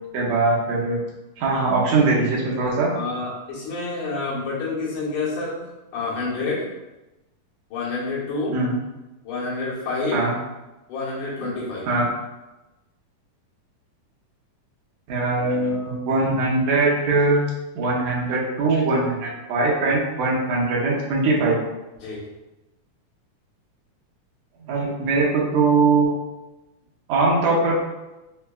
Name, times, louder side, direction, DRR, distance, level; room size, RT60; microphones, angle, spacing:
voice 1, 0.1-1.0 1.4-2.9 8.5-8.8 10.1-10.3 11.9-12.1 15.1-17.4 17.8-21.6 24.7-26.1 27.1-27.8, right 3 dB, 75° right, -4 dB, 1.9 m, -21 dB
voice 2, 2.9-5.6 5.9-6.7 7.7-8.6 9.2-10.2 10.9-11.9 22.0-22.2, left 3 dB, 75° left, -7 dB, 2.4 m, -28 dB
5.5 x 2.2 x 2.2 m, 1.0 s
omnidirectional pair, 3.7 m